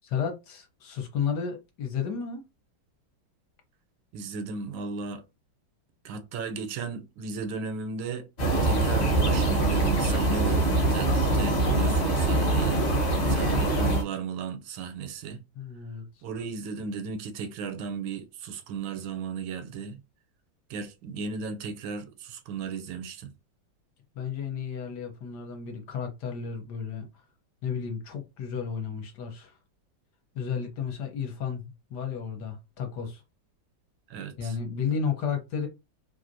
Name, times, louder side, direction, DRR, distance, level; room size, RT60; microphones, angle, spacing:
voice 1, 0.0-2.4 15.6-16.1 24.1-27.1 27.6-29.5 30.3-31.6 31.9-33.2 34.4-35.7, left 6 dB, 65° left, 1.2 m, -32 dB
voice 2, 4.1-5.2 6.0-8.3 8.6-15.4 16.2-20.0 20.7-23.3 34.1-34.6, right 5 dB, 85° right, 1.4 m, -35 dB
sound 1, 8.4-14.0, right 2 dB, 40° left, 1.1 m, -24 dB
3.2 x 2.5 x 2.5 m
omnidirectional pair, 2.2 m